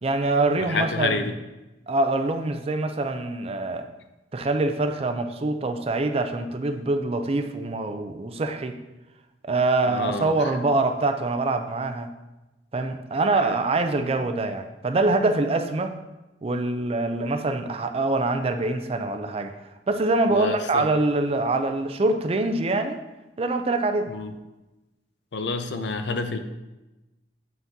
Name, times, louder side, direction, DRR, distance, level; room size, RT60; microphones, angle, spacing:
voice 1, 0.0-1.3 1.9-3.9 4.3-8.8 9.4-12.1 12.7-16.0 16.4-19.5 19.9-23.0 23.4-24.1, right 2 dB, 35° right, 7 dB, 0.4 m, -24 dB
voice 2, 0.7-1.3 9.9-10.5 13.4-13.6 20.3-20.9 24.1-24.3 25.3-26.4, left 3 dB, 65° left, 8 dB, 0.5 m, -29 dB
7.4 x 5.7 x 2.7 m, 1.0 s
head